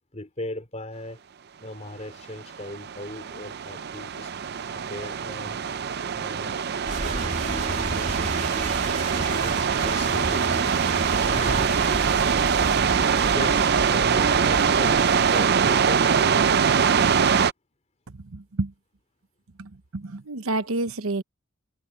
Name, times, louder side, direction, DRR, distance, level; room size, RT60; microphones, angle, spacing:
voice 1, 0.1-1.2 1.6-4.3 4.9-5.6 6.1-8.8 9.1-10.7 11.2-11.7 12.8-13.0 13.3-16.4, left 1 dB, 35° left, 3.7 m, -38 dB
sound 1, 2.4-17.5, right 6 dB, 50° right, 0.5 m, -23 dB
sound 2, 6.9-15.5, right 2 dB, 35° right, 3.2 m, -32 dB
voice 2, 18.3-18.7 19.6-21.2, right 2 dB, 90° right, 0.9 m, -29 dB
head